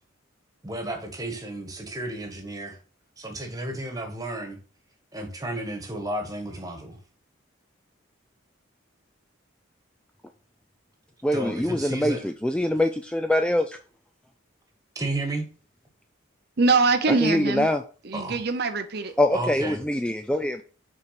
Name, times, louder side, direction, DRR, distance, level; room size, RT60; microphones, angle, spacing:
voice 1, 0.6-2.8 3.2-4.6 5.1-7.0 11.3-12.2 14.9-15.5 18.1-18.4 19.3-19.8, right 1 dB, 20° right, 4 dB, 1.4 m, -32 dB
voice 2, 11.2-13.8 17.2-17.8 19.2-20.6, left 1 dB, 5° left, 6 dB, 0.3 m, -24 dB
voice 3, 16.6-17.7 18.0-19.1, right 3 dB, 50° right, 8 dB, 0.7 m, -23 dB
6.0 x 4.7 x 5.8 m, 0.39 s
head